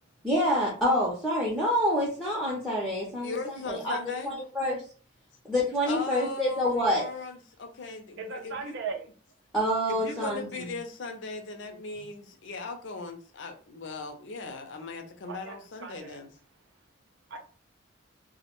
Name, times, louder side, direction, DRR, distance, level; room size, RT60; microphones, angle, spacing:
voice 1, 0.2-4.0 4.2-4.8 5.4-7.1 9.5-10.7, equal, ahead, 0.5 m, -27 dB
voice 2, 3.2-4.3 5.9-8.8 9.9-16.3, left 3 dB, 65° left, 0.5 m, -38 dB
voice 3, 8.2-9.1 15.2-15.6 15.8-16.2 17.3-17.4, right 5 dB, 65° right, 0.4 m, -37 dB
2.2 x 2.1 x 2.9 m
head